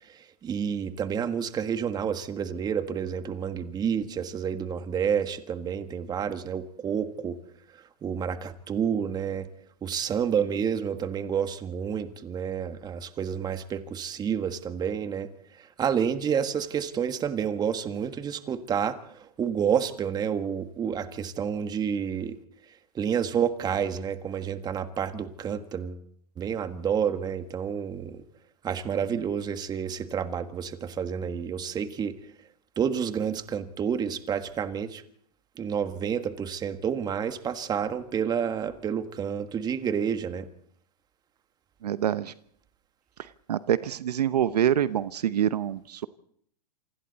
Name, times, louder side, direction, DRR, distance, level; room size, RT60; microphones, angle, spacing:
voice 1, 0.4-7.4 8.0-9.5 9.8-15.3 15.8-19.0 19.4-22.4 22.9-26.0 26.4-28.2 28.6-32.1 32.8-35.0 35.6-40.4, right 7 dB, 20° right, 9 dB, 1.6 m, -29 dB
voice 2, 41.8-42.3 43.5-46.1, right 10 dB, 75° right, 14 dB, 1.0 m, -26 dB
28.0 x 25.0 x 4.1 m, 0.64 s
hypercardioid pair, 125°, 20 cm